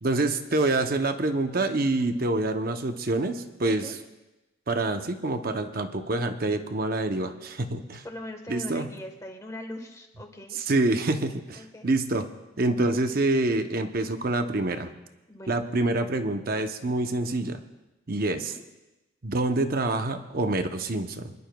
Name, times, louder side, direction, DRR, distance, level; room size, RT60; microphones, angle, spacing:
voice 1, 0.0-3.9 4.7-8.0 8.5-8.9 10.7-12.2 12.6-14.9 15.5-17.6 18.1-18.6 19.2-21.3, right 2 dB, 45° right, 7 dB, 0.7 m, -26 dB
voice 2, 8.0-10.6 11.6-11.9 15.3-15.5 18.3-18.7, left 1 dB, 15° left, 4 dB, 1.2 m, -41 dB
26.5 x 11.0 x 2.3 m, 1.0 s
head